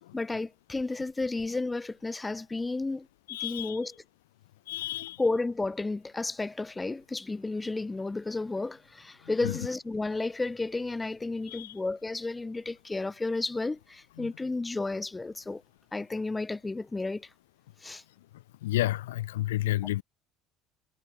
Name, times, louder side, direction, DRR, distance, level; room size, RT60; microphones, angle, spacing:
voice 1, 0.1-3.1 3.4-3.9 5.2-15.6 15.9-17.3 17.8-18.0, left 3 dB, 15° left, 6.0 m, -32 dB
voice 2, 3.3-3.8 4.7-5.2 9.4-9.5 11.5-11.7 14.2-14.3 18.6-20.0, left 15 dB, 80° left, 2.1 m, -31 dB
hypercardioid pair, 65°, 0 cm